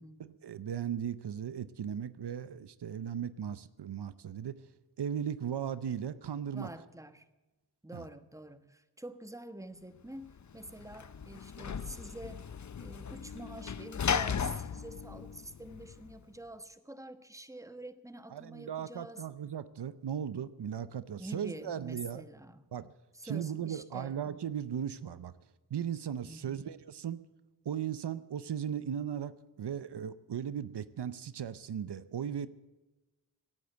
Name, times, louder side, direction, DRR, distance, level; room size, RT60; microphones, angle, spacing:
voice 1, 0.2-4.6 5.0-6.7 7.9-8.0 18.3-22.2 22.7-22.9 23.2-25.3 25.7-27.3 27.6-32.5, right 8 dB, 85° right, 16 dB, 0.7 m, -37 dB
voice 2, 6.5-7.3 7.8-12.4 12.7-19.3 21.2-22.7 23.1-24.2 26.2-26.6, right 1 dB, 10° right, 11 dB, 1.1 m, -47 dB
Sliding door / Slam, 10.3-16.2, left 7 dB, 45° left, 0.6 m, -36 dB
17.5 x 9.5 x 7.7 m, 1.1 s
wide cardioid pair, 60°, 39 cm